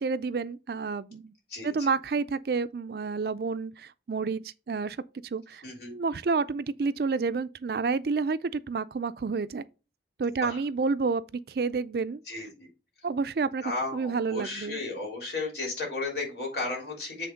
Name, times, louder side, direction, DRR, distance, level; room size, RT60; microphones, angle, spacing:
voice 1, 0.0-1.3 1.6-5.0 5.3-9.7 10.2-12.2 13.0-13.6 13.9-14.8, right 4 dB, 60° right, 0.4 m, -29 dB
voice 2, 1.5-1.9 5.6-5.9 10.4-10.6 12.3-12.7 13.6-17.3, left 3 dB, 65° left, 3.2 m, -34 dB
7.8 x 3.5 x 5.1 m
head